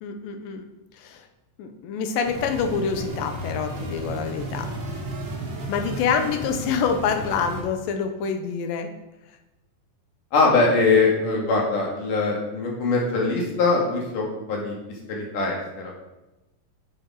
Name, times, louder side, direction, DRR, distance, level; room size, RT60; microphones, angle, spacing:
voice 1, 0.0-0.6 1.0-1.2 1.6-4.7 5.7-8.9, left 6 dB, 80° left, 6 dB, 2.5 m, -26 dB
sound 1, 2.2-7.6, right 1 dB, 50° right, 2.9 m, -33 dB
voice 2, 10.3-14.8 15.1-15.9, left 3 dB, 65° left, -2 dB, 3.4 m, -22 dB
9.5 x 6.9 x 4.8 m, 1.0 s
omnidirectional pair, 4.1 m